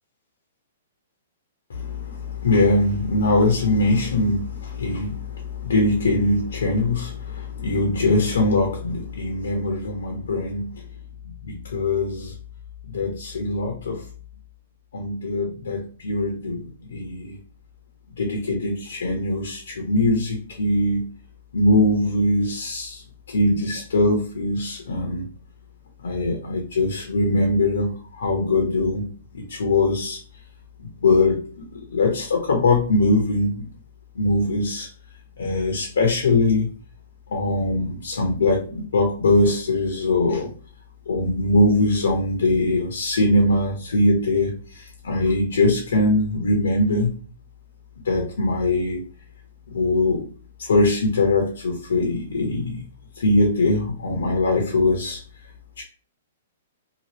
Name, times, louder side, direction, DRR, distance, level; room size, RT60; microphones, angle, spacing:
voice 1, 1.7-10.7 11.4-12.3 12.9-14.0 14.9-17.4 18.2-21.0 21.5-25.3 26.0-29.0 29.3-30.2 31.0-33.6 34.1-34.9 35.4-36.7 37.3-40.5 41.1-47.2 48.0-49.0 49.7-50.2 50.6-52.9 53.2-55.2 55.8-55.9, left 2 dB, 80° left, 1 dB, 0.9 m, -22 dB
2.9 x 2.4 x 3.0 m, 0.41 s
hypercardioid pair, 135°, 0 cm